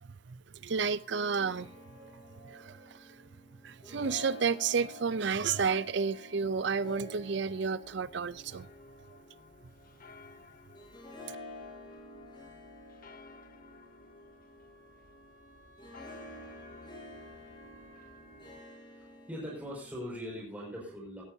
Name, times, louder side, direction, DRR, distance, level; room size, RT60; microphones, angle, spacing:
voice 1, 0.0-3.3 3.6-8.7, right 5 dB, 65° right, 17 dB, 0.5 m, -32 dB
Harp, 0.6-20.4, left 2 dB, 25° left, 5.5 m, -51 dB
sound 1, 7.8-18.6, left 3 dB, 50° left, 0.9 m, -56 dB
Wind instrument woodwind instrument, 13.7-18.8, right 2 dB, 40° right, 3.0 m, -60 dB
voice 2, 19.0-21.2, equal, 10° right, -3 dB, 5.6 m, -41 dB
17.0 x 14.0 x 2.8 m, 0.41 s
head